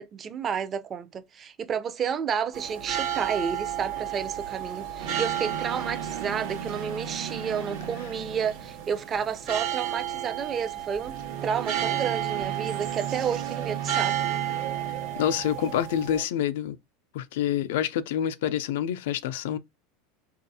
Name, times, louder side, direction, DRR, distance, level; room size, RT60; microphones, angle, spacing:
voice 1, 0.0-11.2 11.4-14.1, right 7 dB, 30° right, 0.5 m, -31 dB
sound 1, 2.5-16.2, right 11 dB, 60° right, 1.2 m, -33 dB
sound 2, 5.0-9.4 11.0-15.8, right 8 dB, 75° right, 1.0 m, -37 dB
voice 2, 15.1-16.8 17.1-19.6, left 10 dB, 75° left, 0.4 m, -27 dB
3.9 x 2.4 x 2.7 m
supercardioid pair, 115°, 0 cm